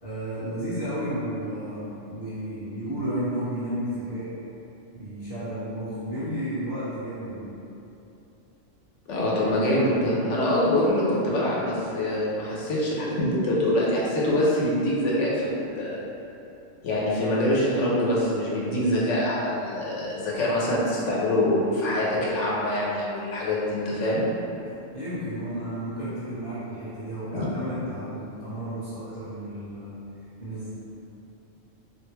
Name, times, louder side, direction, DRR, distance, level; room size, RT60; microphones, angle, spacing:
voice 1, 0.0-4.3 4.9-7.5 24.9-30.0 30.4-30.7, right 1 dB, 25° left, -15 dB, 0.7 m, -32 dB
voice 2, 9.1-16.0 16.8-24.2 27.3-27.4, left 1 dB, 75° left, -5 dB, 1.0 m, -24 dB
3.3 x 2.5 x 3.1 m, 2.8 s
omnidirectional pair, 1.3 m